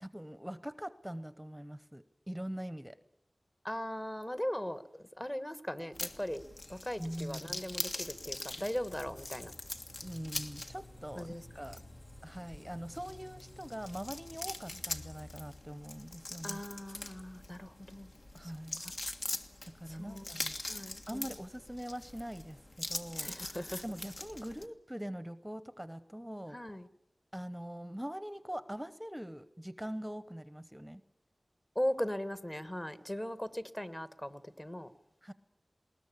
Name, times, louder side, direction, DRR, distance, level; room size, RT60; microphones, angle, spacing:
voice 1, 0.0-3.0 7.0-7.6 10.0-11.8 12.2-16.6 18.3-18.8 19.6-23.3 23.8-26.6 27.3-31.0 35.2-35.3, equal, 5° right, 12 dB, 0.8 m, -43 dB
voice 2, 3.6-4.8 5.2-6.4 6.7-9.5 11.2-11.4 16.4-18.1 20.0-20.2 20.7-21.2 23.2-23.8 26.5-26.9 31.8-34.9, equal, 20° left, 12 dB, 1.2 m, -38 dB
sound 1, 5.9-24.7, left 2 dB, 65° left, 1.7 m, -43 dB
Squeak, 8.0-15.8, left 1 dB, 50° left, 7.3 m, -55 dB
20.5 x 19.5 x 8.5 m, 0.87 s
wide cardioid pair, 60°, 0 cm